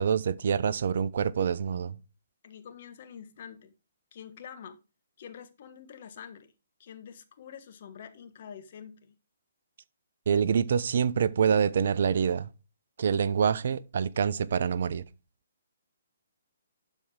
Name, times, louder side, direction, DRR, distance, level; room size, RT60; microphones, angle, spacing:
voice 1, 0.0-2.0 10.3-12.5 13.0-15.0, right 7 dB, 60° right, 0.6 m, -26 dB
voice 2, 2.4-3.7 4.1-4.8 5.2-6.5 6.8-9.1, left 8 dB, 50° left, 1.3 m, -46 dB
12.0 x 4.5 x 3.7 m
hypercardioid pair, 140°, 0 cm